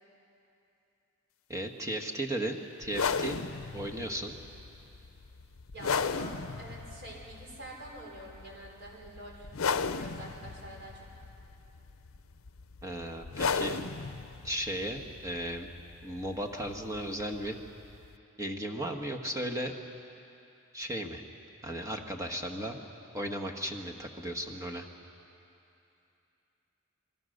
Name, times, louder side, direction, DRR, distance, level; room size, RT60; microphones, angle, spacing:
voice 1, 1.5-3.4 3.7-4.3 12.8-13.8 14.4-15.7 16.0-17.6 18.4-19.7 20.7-21.2 21.6-22.8 23.1-24.9, right 1 dB, 15° right, 3 dB, 1.5 m, -35 dB
sound 1, 2.8-18.2, left 5 dB, 70° left, 0.6 m, -36 dB
voice 2, 5.7-9.5 9.8-11.0, right 1 dB, 55° right, -1 dB, 5.3 m, -46 dB
28.0 x 22.5 x 6.6 m, 2.8 s
head